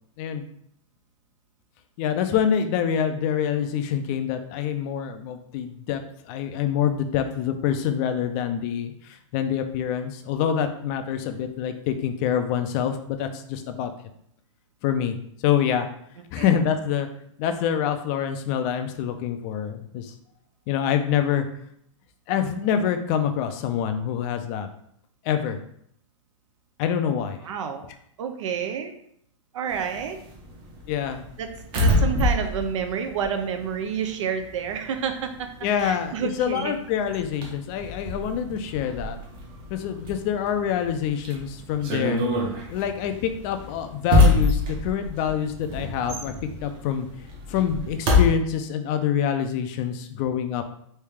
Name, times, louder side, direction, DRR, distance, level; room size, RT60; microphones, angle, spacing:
voice 1, 2.0-13.9 14.8-15.2 15.4-15.9 16.3-17.1 17.4-20.1 20.7-21.5 22.3-24.7 25.2-25.6 26.8-27.4 30.9-31.2 35.6-39.2 39.7-42.2 42.7-46.3 46.6-47.1 47.5-50.6, left 8 dB, 35° left, 7 dB, 0.4 m, -26 dB
voice 2, 27.4-27.8 28.2-28.9 29.5-30.2 31.4-31.5 31.8-35.5 35.8-36.7, right 7 dB, 70° right, 7 dB, 0.6 m, -29 dB
sound 1, 29.7-34.1 34.4-48.3, left 2 dB, 30° right, 0.8 m, -26 dB
3.2 x 2.7 x 3.5 m, 0.69 s
hypercardioid pair, 150°, 17 cm